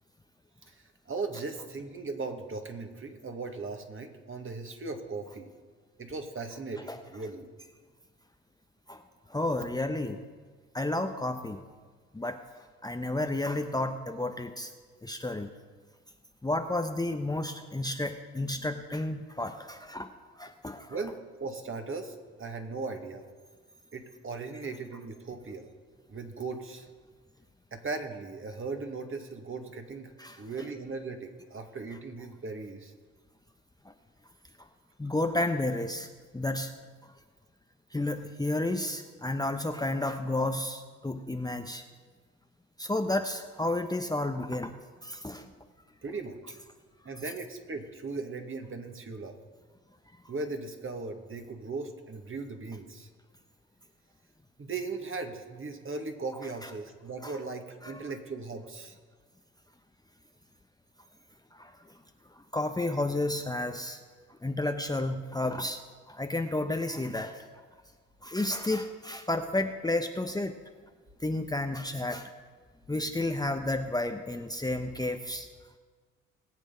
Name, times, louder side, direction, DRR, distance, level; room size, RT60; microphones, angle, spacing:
voice 1, 1.1-5.5 6.0-7.5 9.6-9.7 20.9-23.3 23.9-25.7 26.1-26.9 27.7-30.1 30.4-32.9 46.0-46.4 47.0-49.4 50.3-53.1 54.6-58.9, right 3 dB, 35° right, 5 dB, 2.1 m, -38 dB
voice 2, 9.3-10.2 10.7-11.6 12.1-12.4 12.8-14.7 15.0-15.5 16.4-20.1 20.4-21.0 30.2-30.4 33.8-33.9 35.0-36.1 36.3-36.7 37.9-41.8 42.8-44.7 45.0-45.5 56.6-56.7 57.2-57.3 57.8-58.1 61.5-61.7 62.5-64.0 64.4-65.8 66.1-67.4 68.2-70.5 71.2-72.3 72.9-75.5, left 2 dB, 10° left, 5 dB, 1.0 m, -31 dB
20.5 x 8.5 x 4.0 m, 1.5 s
hypercardioid pair, 50°, 35 cm